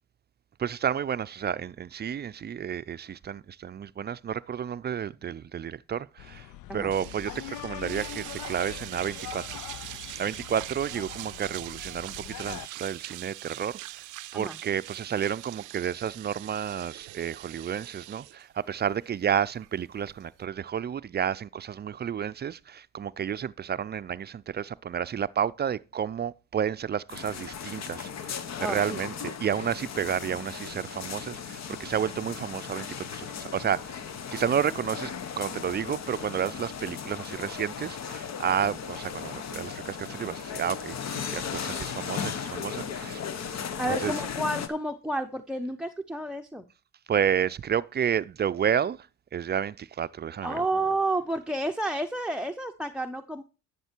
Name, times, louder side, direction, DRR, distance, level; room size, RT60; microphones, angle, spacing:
voice 1, 0.6-6.5 6.7-43.2 43.9-44.1 47.1-50.6, right 8 dB, 35° right, 0.4 m, -31 dB
sound 1, 6.2-12.7, left 13 dB, 80° left, 0.6 m, -42 dB
sound 2, 6.9-20.4, right 19 dB, 85° right, 0.5 m, -43 dB
sound 3, 27.1-44.7, left 7 dB, 60° left, 1.3 m, -36 dB
voice 2, 28.6-29.0 43.8-46.6 50.4-53.4, right 1 dB, 5° right, 0.7 m, -30 dB
11.5 x 7.4 x 4.5 m
cardioid pair, 90°, 30 cm